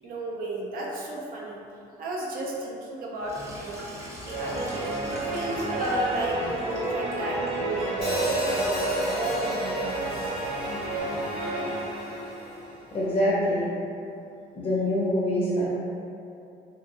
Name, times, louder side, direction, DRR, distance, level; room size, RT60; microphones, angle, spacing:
voice 1, 0.0-1.6 2.0-3.9 4.2-10.4, right 1 dB, 60° right, -2 dB, 0.6 m, -33 dB
Sink (filling or washing), 3.2-11.0, equal, 15° right, 0.8 m, -45 dB
sound 1, 4.2-12.8, right 2 dB, 45° right, 1.3 m, -31 dB
Hi-hat, 8.0-12.2, equal, 90° left, 0.8 m, -32 dB
voice 2, 12.9-13.7 14.6-15.7, left 1 dB, 30° left, -6 dB, 0.6 m, -25 dB
2.7 x 2.6 x 2.6 m, 2.7 s
cardioid pair, 110°, 17 cm